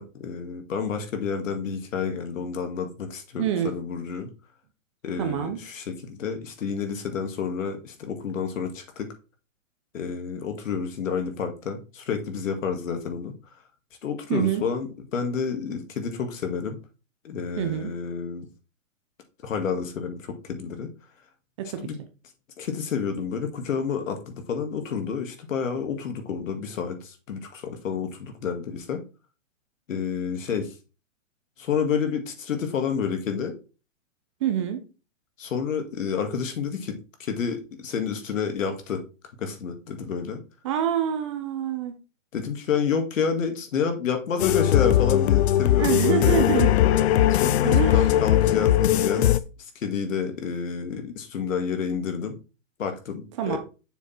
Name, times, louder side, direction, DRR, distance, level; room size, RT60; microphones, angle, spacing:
voice 1, 0.0-4.3 5.0-9.1 9.9-13.3 14.0-16.8 17.2-18.5 19.4-20.9 21.8-22.0 22.6-29.0 29.9-30.7 31.6-33.6 35.4-39.0 39.4-40.4 42.3-46.4 47.3-49.4 49.8-52.3 52.8-53.6, left 6 dB, 80° left, 6 dB, 2.0 m, -29 dB
voice 2, 3.4-3.7 5.2-5.6 14.3-14.6 17.6-17.9 21.6-21.9 34.4-34.8 40.6-41.9 45.8-46.7 47.6-48.0 53.4-53.6, right 9 dB, 25° right, 7 dB, 0.6 m, -26 dB
sound 1, 44.4-49.4, left 12 dB, 55° left, 0.5 m, -20 dB
6.9 x 4.5 x 4.3 m, 0.33 s
hypercardioid pair, 160°, 39 cm